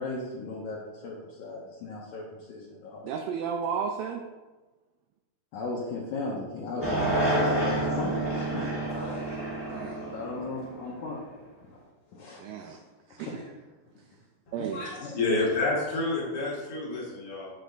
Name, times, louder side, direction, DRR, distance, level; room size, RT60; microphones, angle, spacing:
voice 1, 0.0-3.1 5.5-9.2 10.1-11.2 11.7-11.8 12.1-12.4 13.2-13.5 15.0-15.1, left 3 dB, 75° left, -4 dB, 1.9 m, -37 dB
voice 2, 3.0-4.2 9.7-10.0 12.4-12.8 13.1-13.4 14.5-14.9 16.9-17.0, right 7 dB, 80° right, 3 dB, 2.1 m, -33 dB
sound 1, 6.8-11.2, right 1 dB, 10° right, 0.7 m, -29 dB
voice 3, 14.5-17.5, left 2 dB, 55° left, -5 dB, 1.7 m, -29 dB
9.3 x 3.4 x 3.9 m, 1.2 s
omnidirectional pair, 4.2 m